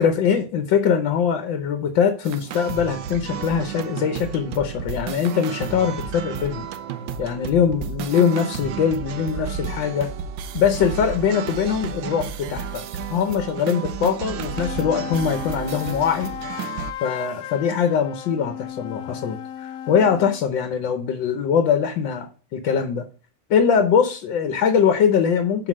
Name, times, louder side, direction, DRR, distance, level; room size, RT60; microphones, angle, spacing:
voice 1, 0.0-6.7 7.2-10.1 10.5-12.8 13.1-16.3 17.0-23.0 23.5-25.7, left 7 dB, 90° left, 7 dB, 1.6 m, -22 dB
sound 1, 2.2-16.9, right 7 dB, 85° right, 1.4 m, -32 dB
sound 2, 14.2-20.4, left 9 dB, 70° left, 0.8 m, -35 dB
6.0 x 4.9 x 6.1 m, 0.38 s
omnidirectional pair, 2.0 m